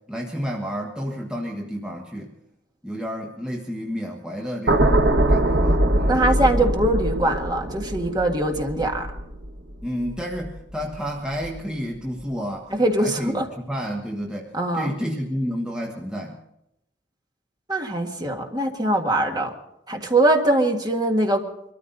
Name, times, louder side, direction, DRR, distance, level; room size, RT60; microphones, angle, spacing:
voice 1, 0.1-2.3 2.8-6.2 9.8-12.7 13.0-16.4, equal, 5° right, -1 dB, 1.4 m, -30 dB
sound 1, 4.7-11.0 11.3-11.6, right 1 dB, 65° right, 1.6 m, -23 dB
voice 2, 6.1-9.1 12.7-13.5 14.5-14.9 17.7-19.5 19.9-21.4, right 1 dB, 20° right, 3 dB, 1.8 m, -22 dB
23.5 x 13.5 x 4.0 m, 0.81 s
head